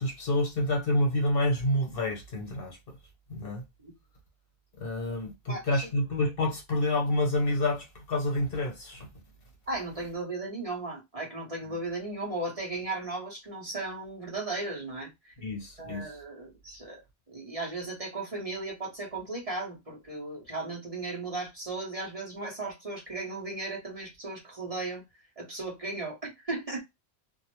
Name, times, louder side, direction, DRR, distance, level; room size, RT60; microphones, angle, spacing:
voice 1, 0.0-3.0 3.3-3.6 4.8-9.1 15.4-16.1, left 1 dB, 60° left, 1.0 m, -28 dB
voice 2, 5.5-5.8 9.7-15.3 15.8-17.0 17.3-25.0 25.4-26.8, right 2 dB, 35° right, 1.0 m, -36 dB
2.6 x 2.1 x 2.9 m
omnidirectional pair, 1.1 m